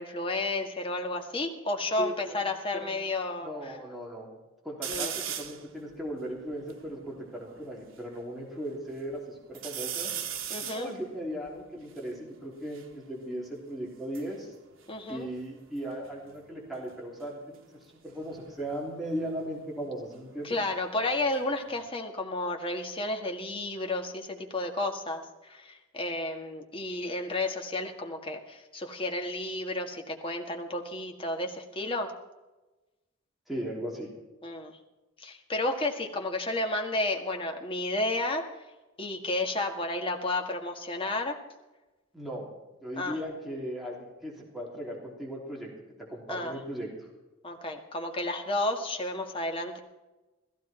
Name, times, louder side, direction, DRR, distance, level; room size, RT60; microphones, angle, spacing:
voice 1, 0.0-3.8 4.9-5.1 10.5-10.9 14.9-15.3 20.4-32.1 34.4-34.8 35.2-38.5 39.0-41.4 43.0-43.2 46.3-46.6 47.4-49.8, left 2 dB, 30° left, 3 dB, 1.8 m, -32 dB
voice 2, 2.0-2.4 2.7-2.9 3.4-4.3 4.6-5.1 5.4-10.1 10.6-14.5 15.1-20.6 33.5-34.1 42.1-42.5 42.8-45.7 46.1-47.1, right 1 dB, ahead, -3 dB, 3.3 m, -37 dB
sound 1, 4.8-5.7 6.2-6.3 6.5-8.0 8.6-9.1 9.5-12.9 13.9-15.8 16.0-16.5 18.1-20.7 21.1-21.9, right 9 dB, 85° right, 1.4 m, -40 dB
15.5 x 15.0 x 4.4 m, 1.1 s
head